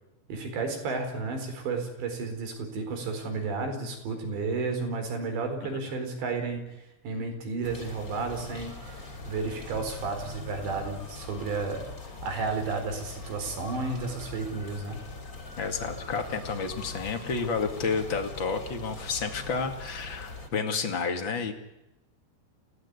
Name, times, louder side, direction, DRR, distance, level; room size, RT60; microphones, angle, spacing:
voice 1, 0.3-6.6 7.0-11.8 12.2-15.0, right 4 dB, 80° right, 5 dB, 6.7 m, -32 dB
sound 1, 7.6-20.5, left 3 dB, 25° left, 2.9 m, -42 dB
voice 2, 15.6-21.5, left 5 dB, 40° left, 6 dB, 1.9 m, -30 dB
29.0 x 16.5 x 9.7 m, 0.95 s
omnidirectional pair, 5.0 m